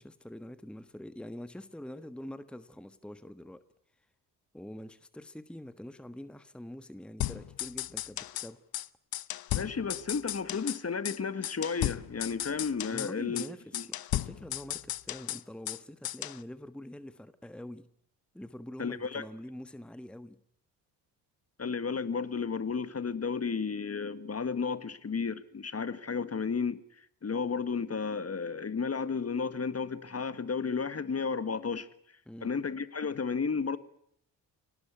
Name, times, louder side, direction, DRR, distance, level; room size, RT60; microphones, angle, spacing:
voice 1, 0.0-3.7 4.5-8.6 12.9-17.9 18.3-20.4 32.2-32.5, left 1 dB, ahead, 1.4 m, -45 dB
sound 1, 7.2-8.5 8.7-8.9 9.1-10.8 11.1-11.2 11.4-13.1 13.4-13.5 13.7-15.8 16.0-16.4, left 13 dB, 45° left, 0.9 m, -35 dB
voice 2, 9.5-13.4 13.7-13.8 18.8-19.2 21.6-26.8 27.2-31.9 32.4-33.8, left 5 dB, 30° left, 1.7 m, -33 dB
27.0 x 18.5 x 8.3 m
figure-of-eight pair, 45°, 49 cm